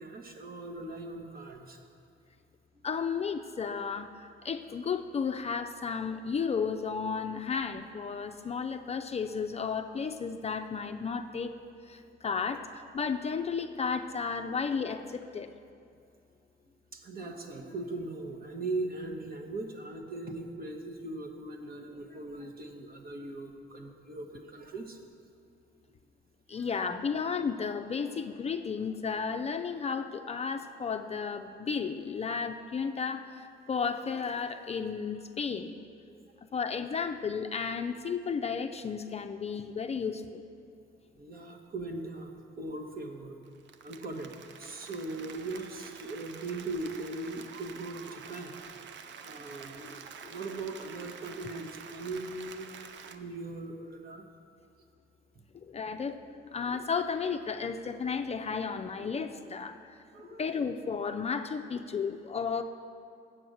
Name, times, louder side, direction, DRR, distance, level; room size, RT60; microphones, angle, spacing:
voice 1, 0.0-1.8 2.7-2.9 12.1-12.3 16.9-25.0 25.9-26.0 26.5-26.7 36.1-36.3 41.2-43.4 43.8-48.5 49.2-52.7 53.0-54.2 60.1-60.5, right 2 dB, 50° right, 3 dB, 1.2 m, -40 dB
voice 2, 2.8-11.5 11.9-15.5 26.5-35.8 36.5-40.4 55.5-60.0 60.4-62.6, left 5 dB, 30° left, 6 dB, 0.4 m, -33 dB
Applause, 43.5-53.2, right 7 dB, 65° right, 0.6 m, -48 dB
7.8 x 6.1 x 7.9 m, 2.5 s
cardioid pair, 90°, 20 cm